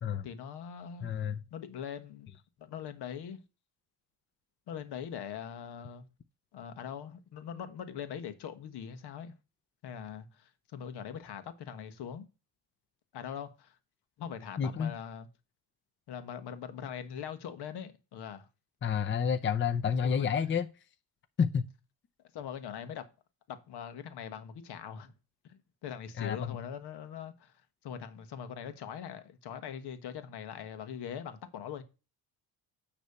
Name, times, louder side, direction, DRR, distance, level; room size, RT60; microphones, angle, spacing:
voice 1, 0.2-1.1 1.5-2.3 2.6-3.4 4.7-6.0 6.5-9.4 9.8-12.3 13.1-13.8 14.2-15.3 16.1-18.5 20.0-20.5 22.3-23.1 23.5-25.1 25.5-27.5 27.8-31.8, left 8 dB, 70° left, 1.5 m, -42 dB
voice 2, 1.0-1.4 14.6-14.9 18.8-20.7 21.4-21.7 26.2-26.6, left 7 dB, 30° left, 0.6 m, -29 dB
9.4 x 3.3 x 6.8 m
cardioid pair, 90°, 42 cm